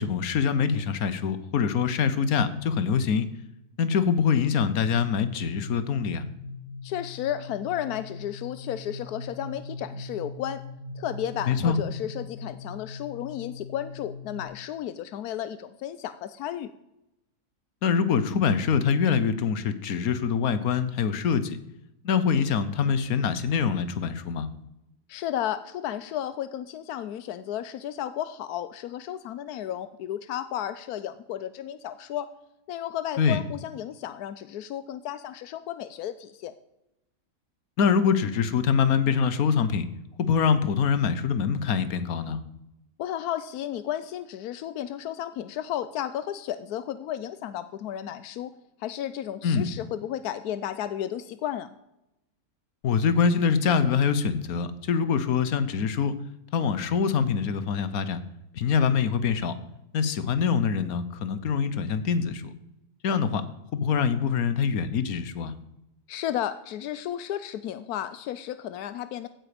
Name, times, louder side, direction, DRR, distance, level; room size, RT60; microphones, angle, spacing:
voice 1, 0.0-3.3 3.8-6.2 11.5-11.8 17.8-21.6 22.0-24.5 33.2-33.4 37.8-39.8 40.2-42.4 49.4-49.7 52.8-56.1 56.5-58.2 58.6-59.5 59.9-62.5 63.0-63.4 63.7-65.5, left 6 dB, 70° left, 13 dB, 1.4 m, -24 dB
sound 1, 5.6-14.4, left 3 dB, 30° right, 3.5 m, -40 dB
voice 2, 6.8-10.6 11.0-16.7 25.1-32.3 32.7-36.5 43.0-48.5 48.8-51.7 66.1-69.3, left 11 dB, 90° left, 13 dB, 1.2 m, -33 dB
16.0 x 9.2 x 5.1 m, 0.89 s
omnidirectional pair, 1.6 m